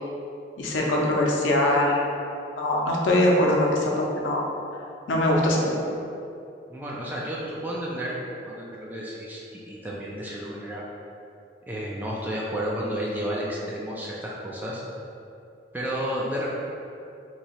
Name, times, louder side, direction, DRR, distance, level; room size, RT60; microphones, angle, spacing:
voice 1, 0.6-2.0 2.6-4.4 5.1-5.7, left 1 dB, 85° left, -2 dB, 0.6 m, -22 dB
voice 2, 6.7-8.2 8.4-10.8 11.7-14.8 15.7-16.5, equal, 10° right, -5 dB, 0.4 m, -31 dB
3.0 x 2.7 x 4.3 m, 2.6 s
head